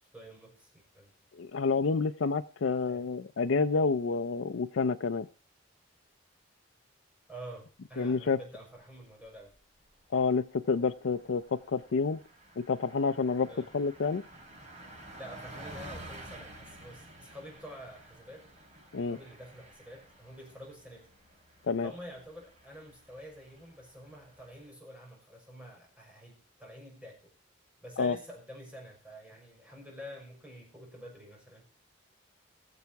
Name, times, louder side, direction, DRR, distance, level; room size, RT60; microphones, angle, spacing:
voice 1, 0.1-0.7 0.9-1.1 2.9-3.0 7.3-9.5 13.5-13.7 15.2-18.4 19.1-21.0 21.8-27.3 27.8-31.7, equal, 5° right, -1 dB, 6.2 m, -48 dB
voice 2, 1.4-5.3 8.0-8.4 10.1-12.2 12.6-13.5 13.7-14.2 18.9-19.2 21.7-21.9 28.0-28.2, left 4 dB, 80° left, 8 dB, 0.5 m, -29 dB
Car passing by, 9.2-9.6 10.0-10.1 10.4-24.7, right 1 dB, 40° right, 5.1 m, -51 dB
20.5 x 7.1 x 4.7 m, 0.38 s
head